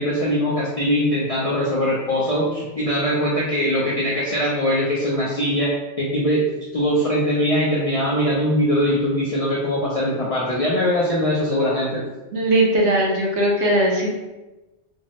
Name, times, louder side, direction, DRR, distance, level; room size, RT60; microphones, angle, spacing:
voice 1, 0.0-6.5 6.7-12.0, equal, 55° left, -6 dB, 0.4 m, -21 dB
voice 2, 12.3-14.1, right 1 dB, 75° right, -2 dB, 1.0 m, -19 dB
3.4 x 2.0 x 2.7 m, 1.1 s
omnidirectional pair, 1.2 m